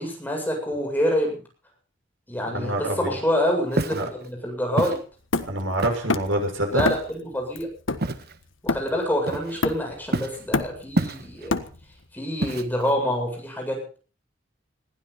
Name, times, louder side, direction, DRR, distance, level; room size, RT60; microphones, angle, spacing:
voice 1, 0.0-1.4 2.3-5.0 6.7-7.7 8.6-11.5 12.1-14.0, equal, 10° left, 1 dB, 7.8 m, -26 dB
voice 2, 2.5-3.2 3.9-4.1 5.5-6.8, right 1 dB, 80° right, 4 dB, 6.7 m, -26 dB
Walk footsteps, 3.7-4.1 4.8-5.0 5.8-6.2 6.8-7.1 8.0-8.3 9.3-9.7 10.1-10.4 11.0-11.5 12.4-12.9, right 1 dB, 55° right, 1.4 m, -27 dB
Hammer, 5.3-6.5 6.8-7.2 7.6-9.1 9.6-10.1 10.4-12.0, left 3 dB, 80° left, 1.5 m, -28 dB
21.0 x 15.5 x 4.2 m, 0.37 s
head